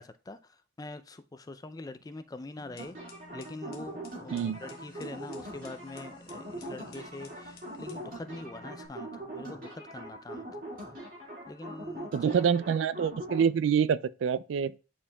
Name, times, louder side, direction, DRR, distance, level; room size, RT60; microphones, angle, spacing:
voice 1, 0.0-10.5 11.5-12.5, left 2 dB, 20° left, 0.3 m, -44 dB
sound 1, 2.6-8.9, left 2 dB, 50° left, 1.2 m, -53 dB
sound 2, 2.8-13.4, right 1 dB, 45° right, 2.0 m, -42 dB
voice 2, 12.1-14.7, right 7 dB, 70° right, 0.3 m, -26 dB
9.8 x 4.4 x 2.2 m
head